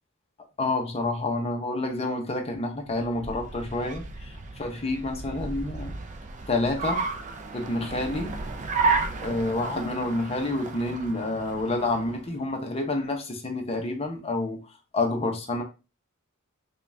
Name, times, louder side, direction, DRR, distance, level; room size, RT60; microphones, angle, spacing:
voice 1, 0.6-6.0 6.5-7.1 7.5-8.4 9.1-14.6 14.9-15.6, left 2 dB, 30° left, 0.7 m, -28 dB
Car, 2.8-12.4, right 4 dB, 35° right, 0.4 m, -32 dB
5.1 x 2.3 x 2.6 m
head